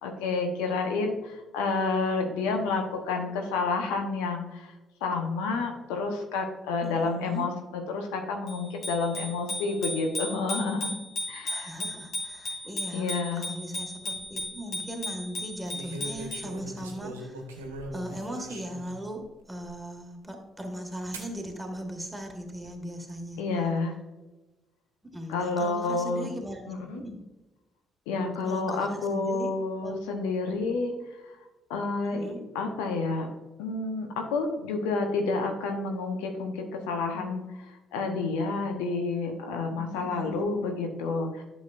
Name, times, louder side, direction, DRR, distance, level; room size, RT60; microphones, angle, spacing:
voice 1, 0.0-4.7 5.0-11.0 11.3-11.7 12.9-13.4 23.4-23.9 25.3-26.3 26.7-27.0 28.1-30.9 31.2-31.3 31.7-33.3 33.6-41.4, left 3 dB, 70° left, 4 dB, 0.9 m, -29 dB
voice 2, 6.8-7.5 11.5-17.4 17.9-23.4 25.0-26.6 26.9-27.2 28.5-29.5 29.8-30.0 30.5-30.6 32.0-32.4 39.9-40.5, equal, 10° right, 3 dB, 1.9 m, -39 dB
Bicycle bell, 8.5-16.6, left 1 dB, 55° left, 2.6 m, -36 dB
sound 1, 14.0-14.4 15.7-19.0 19.6-19.7 21.1-21.3 22.2-22.7, right 1 dB, 80° right, 1.2 m, -41 dB
11.5 x 6.2 x 2.5 m, 1.1 s
figure-of-eight pair, 45°, 0 cm